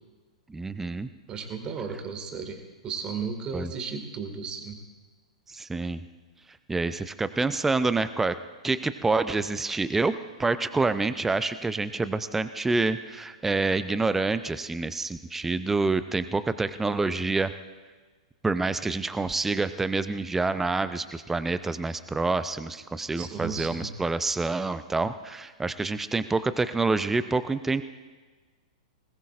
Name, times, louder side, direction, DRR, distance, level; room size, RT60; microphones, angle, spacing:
voice 1, 0.5-1.1 3.5-3.7 5.5-6.0 6.7-8.4 8.6-10.1 10.4-17.5 18.4-27.8, right 3 dB, 10° right, 13 dB, 0.5 m, -27 dB
voice 2, 1.3-4.8 23.2-24.0, right 5 dB, 25° right, 5 dB, 2.1 m, -35 dB
20.5 x 19.0 x 2.5 m, 1.4 s
figure-of-eight pair, 105°, 4 cm